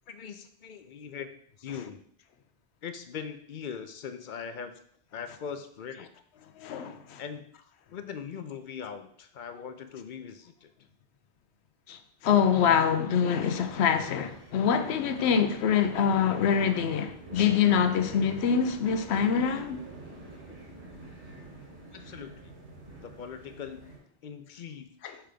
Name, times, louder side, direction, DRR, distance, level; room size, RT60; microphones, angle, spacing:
voice 1, 0.1-2.0 2.8-4.7 5.1-6.1 7.2-7.5 7.9-10.7 21.9-22.6 23.0-23.9 24.2-24.9, left 7 dB, 60° left, 0.6 m, -41 dB
voice 2, 6.6-7.2 11.9-19.8 25.0-25.2, left 7 dB, 90° left, 0.9 m, -25 dB
sound 1, 13.3-24.0, right 2 dB, 50° right, 1.8 m, -48 dB
5.9 x 3.4 x 5.0 m
omnidirectional pair, 1.1 m